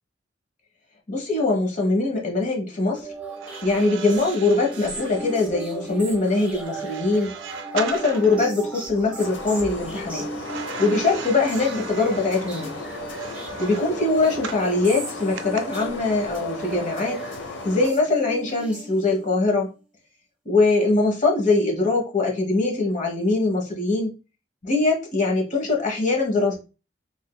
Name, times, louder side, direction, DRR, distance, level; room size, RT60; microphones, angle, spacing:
voice 1, 1.1-3.1 3.6-7.3 7.7-10.2 10.8-12.8 13.6-17.3 17.6-19.7 20.4-24.1 24.6-26.6, left 3 dB, 40° left, 1 dB, 1.2 m, -22 dB
sound 1, 3.0-19.4, right 3 dB, 10° right, 0.9 m, -37 dB
sound 2, 3.3-8.5 10.4-14.7 15.4-15.6, right 6 dB, 90° right, 0.5 m, -38 dB
sound 3, 9.2-17.9, left 3 dB, 90° left, 0.7 m, -36 dB
3.6 x 3.5 x 2.2 m, 0.30 s
head